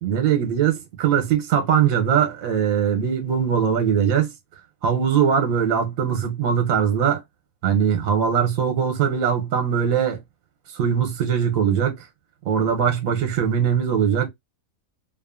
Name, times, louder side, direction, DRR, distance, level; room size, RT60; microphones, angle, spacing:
voice 1, 0.0-4.3 4.8-7.2 7.6-10.2 10.7-12.1 12.4-14.3, right 8 dB, 75° right, 1.1 m, -21 dB
2.6 x 2.4 x 2.3 m
omnidirectional pair, 1.5 m